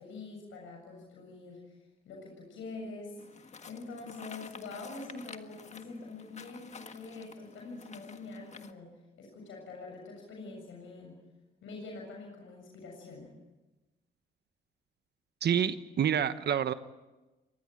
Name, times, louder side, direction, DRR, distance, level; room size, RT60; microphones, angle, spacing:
voice 1, 0.0-1.7 2.0-8.9 9.2-11.2 11.6-13.3, left 3 dB, 80° left, 1 dB, 7.1 m, -45 dB
sound 1, 3.2-8.7, left 5 dB, 35° left, 1.7 m, -50 dB
voice 2, 15.4-16.7, right 8 dB, 55° right, 11 dB, 1.2 m, -28 dB
24.5 x 19.5 x 9.1 m, 1.1 s
cardioid pair, 90°, 20 cm